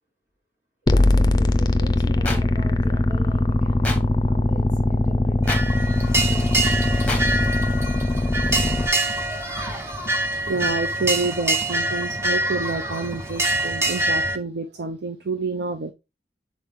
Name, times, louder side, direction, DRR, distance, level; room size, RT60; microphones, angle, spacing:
voice 1, 0.8-5.7 6.2-7.2, equal, 50° right, 4.1 m, -42 dB
sound 1, 0.9-8.9, left 2 dB, 25° left, 0.5 m, -21 dB
sound 2, 2.2-2.4 3.8-4.0 5.5-5.6 7.1-7.2, left 2 dB, 10° left, 1.1 m, -26 dB
sound 3, 5.4-14.4, right 2 dB, 15° right, 0.7 m, -25 dB
voice 2, 10.5-15.9, right 3 dB, 75° right, 0.6 m, -28 dB
7.3 x 4.2 x 3.6 m
head